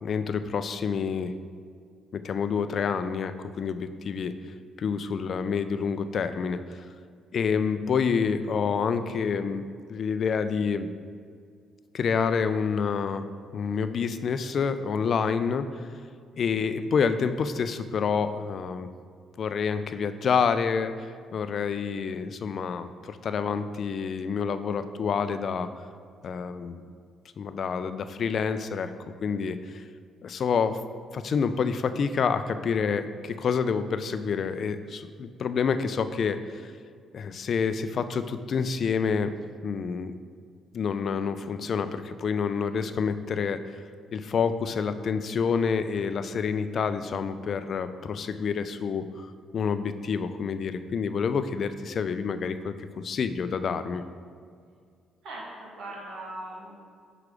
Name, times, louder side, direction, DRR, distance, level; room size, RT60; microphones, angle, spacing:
voice 1, 0.0-1.3 2.1-4.3 4.8-6.9 7.3-9.6 9.9-10.9 11.9-13.3 13.5-15.7 16.4-18.9 19.4-25.7 26.2-26.9 27.4-28.9 29.2-29.8 30.2-30.8 31.1-36.6 37.1-39.3 39.6-40.2 40.7-43.6 44.1-54.0, left 6 dB, 55° left, 11 dB, 0.4 m, -28 dB
voice 2, 55.2-56.8, right 1 dB, 75° right, -3 dB, 1.9 m, -40 dB
6.5 x 4.8 x 4.9 m, 2.1 s
cardioid pair, 85°, 0 cm